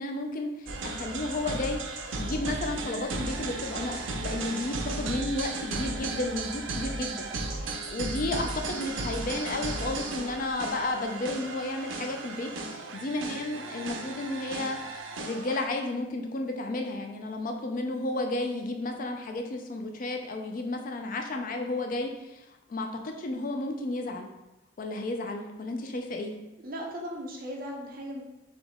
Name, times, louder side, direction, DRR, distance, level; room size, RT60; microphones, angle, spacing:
voice 1, 0.0-1.8 2.2-7.3 7.9-22.4 22.7-24.3 24.8-26.3, left 2 dB, 45° left, 3 dB, 0.4 m, -32 dB
sound 1, 0.7-15.7, right 3 dB, 85° right, 0.6 m, -35 dB
voice 2, 26.6-28.2, equal, 50° right, -2 dB, 0.8 m, -37 dB
4.1 x 2.9 x 3.5 m, 0.98 s
head